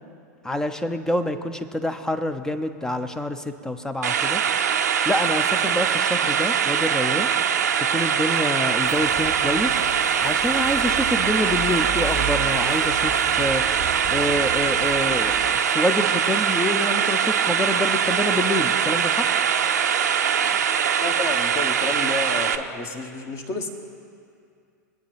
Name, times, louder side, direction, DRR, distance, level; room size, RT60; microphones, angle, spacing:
voice 1, 0.4-4.4 5.0-7.3 7.8-9.8 10.2-13.7 14.1-19.3, left 1 dB, 5° left, 9 dB, 0.8 m, -27 dB
sound 1, 4.0-22.6, right 8 dB, 70° right, 0.7 m, -22 dB
sound 2, 8.8-15.5, right 3 dB, 65° left, 2.5 m, -35 dB
voice 2, 21.0-23.7, left 3 dB, 30° left, 4 dB, 1.8 m, -31 dB
24.0 x 9.2 x 3.5 m, 2.4 s
figure-of-eight pair, 95°, 10 cm